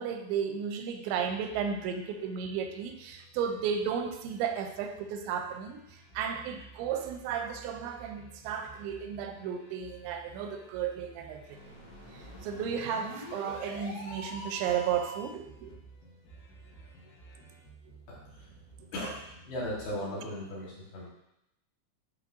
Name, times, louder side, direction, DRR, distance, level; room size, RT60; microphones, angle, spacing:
voice 1, 0.0-11.6 12.1-15.7 20.0-20.1, right 7 dB, 85° right, 6 dB, 2.8 m, -34 dB
sound 1, 1.1-20.0, right 3 dB, 90° left, 3.9 m, -55 dB
sound 2, 11.5-15.4, right 1 dB, 50° left, 1.7 m, -44 dB
voice 2, 19.5-21.1, equal, 65° left, -6 dB, 3.2 m, -36 dB
11.5 x 4.0 x 2.6 m, 0.83 s
omnidirectional pair, 5.2 m